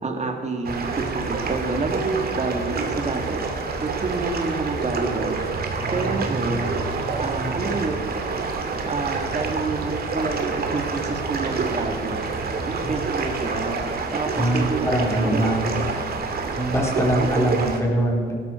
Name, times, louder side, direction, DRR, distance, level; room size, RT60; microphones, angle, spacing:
voice 1, 0.0-3.4 3.8-5.4 5.9-6.7 7.2-8.1 8.8-12.2 12.7-13.8 14.1-15.0 15.3-15.4 15.8-15.9 17.2-17.5, right 3 dB, 35° right, 3 dB, 2.6 m, -28 dB
sound 1, 0.6-17.8, right 4 dB, 50° right, 2.2 m, -27 dB
voice 2, 14.4-15.8 16.5-18.3, right 1 dB, 15° left, -2 dB, 4.3 m, -22 dB
18.0 x 12.5 x 4.7 m, 2.2 s
cardioid pair, 90°, 20 cm